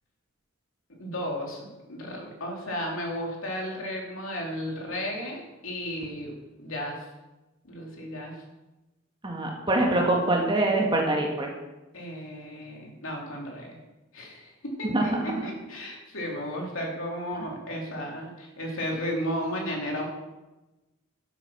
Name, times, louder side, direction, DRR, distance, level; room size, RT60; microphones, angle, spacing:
voice 1, 1.0-7.0 7.7-8.3 11.9-13.8 14.1-20.1, equal, 65° left, -1 dB, 3.1 m, -34 dB
voice 2, 9.2-11.5 14.8-15.3, right 2 dB, 25° right, 0 dB, 1.8 m, -24 dB
11.5 x 8.6 x 6.1 m, 1.1 s
head